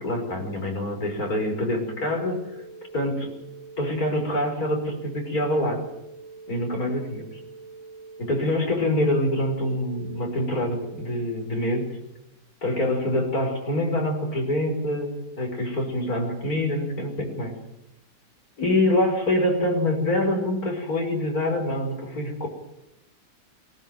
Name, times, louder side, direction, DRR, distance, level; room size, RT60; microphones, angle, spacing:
voice 1, 0.0-2.4 2.9-3.3 3.8-5.8 6.5-7.4 8.2-11.9 12.6-15.1 15.4-17.5 18.6-22.5, left 1 dB, 55° left, 2 dB, 6.1 m, -25 dB
sound 1, 1.2-11.2, right 4 dB, 80° right, 3.1 m, -44 dB
24.0 x 17.5 x 9.4 m, 0.86 s
omnidirectional pair, 1.9 m